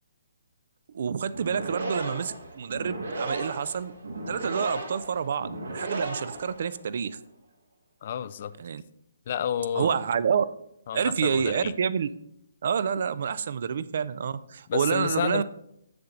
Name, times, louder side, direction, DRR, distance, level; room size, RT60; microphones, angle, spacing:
voice 1, 0.9-3.9 4.3-7.2 8.6-8.8 9.7-10.5 10.9-12.1 12.6-15.4, right 7 dB, 55° right, 15 dB, 0.4 m, -28 dB
sound 1, 1.3-7.0, right 2 dB, 80° right, 1.6 m, -35 dB
voice 2, 8.0-8.5 9.3-10.0 10.9-11.7 14.7-15.4, left 9 dB, 45° left, 15 dB, 0.3 m, -30 dB
6.8 x 6.7 x 3.8 m, 0.78 s
figure-of-eight pair, 135°, 0 cm